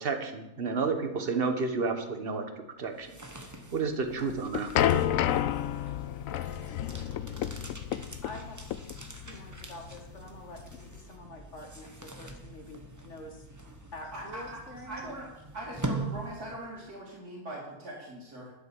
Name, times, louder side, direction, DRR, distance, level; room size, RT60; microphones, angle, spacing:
voice 1, 0.0-2.5 2.8-3.1 3.7-4.9, right 4 dB, 40° right, 7 dB, 1.4 m, -31 dB
sound 1, 2.8-16.9, right 2 dB, 15° right, 1.0 m, -43 dB
sound 2, 4.1-11.0, left 11 dB, 65° left, 0.9 m, -30 dB
voice 2, 8.2-13.5 13.9-15.0, left 1 dB, 45° left, 2 dB, 2.2 m, -46 dB
voice 3, 14.1-14.4 14.8-15.3 15.5-18.5, right 1 dB, 75° right, -7 dB, 3.2 m, -41 dB
12.5 x 7.8 x 7.2 m, 0.93 s
omnidirectional pair, 1.7 m